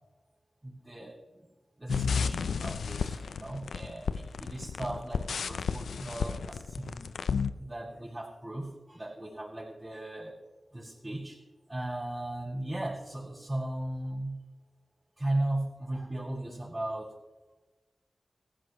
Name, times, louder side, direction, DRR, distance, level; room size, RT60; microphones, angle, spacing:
voice 1, 0.6-1.5 1.8-7.1 7.6-10.4 10.7-11.4 11.7-14.4 15.2-17.1, right 1 dB, 25° right, -8 dB, 5.5 m, -37 dB
sound 1, 1.9-7.5, left 6 dB, 90° left, 0.6 m, -32 dB
18.5 x 15.5 x 3.2 m, 1.2 s
cardioid pair, 40°, 0 cm